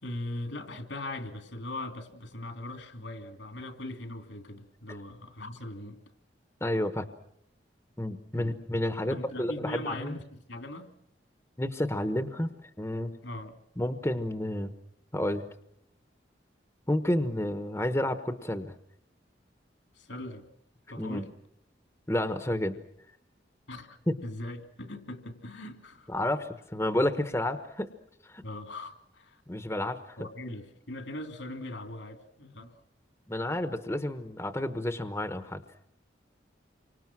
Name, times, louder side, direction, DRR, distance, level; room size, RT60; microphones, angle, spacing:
voice 1, 0.0-6.0 8.3-8.6 9.0-10.9 13.2-13.6 19.9-20.5 20.9-21.3 23.7-26.1 28.4-29.4 30.2-32.8, left 1 dB, 80° left, 7 dB, 3.2 m, -40 dB
voice 2, 6.6-7.1 8.0-10.2 11.6-12.5 12.8-13.1 13.8-14.7 15.1-15.4 16.9-18.7 21.0-21.2 22.1-22.8 24.1-24.2 26.1-27.9 28.2-28.4 29.5-30.2 33.3-35.6, left 1 dB, 15° left, 9 dB, 1.1 m, -30 dB
29.5 x 25.5 x 6.2 m, 0.75 s
head